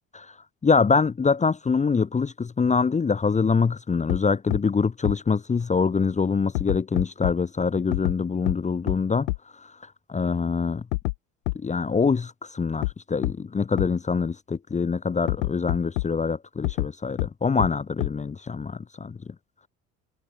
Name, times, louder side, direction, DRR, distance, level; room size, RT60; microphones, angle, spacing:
voice 1, 0.6-9.3 9.6-9.7 10.1-10.8 11.5-19.2, left 5 dB, 20° left, 1.2 m, -24 dB
sound 1, 4.1-4.2 4.5-4.6 5.0-5.1 6.5-7.3 7.9-8.1 8.5-8.6 8.9-9.0 9.3-9.4 10.9-11.1 11.5-11.6 12.8-12.9 13.2-13.3 13.8-13.9 15.3-16.1 16.6-16.9 17.2-17.3 17.6-17.7 18.0-18.1, left 23 dB, 65° left, 2.4 m, -25 dB
figure-of-eight pair, 60°, 39 cm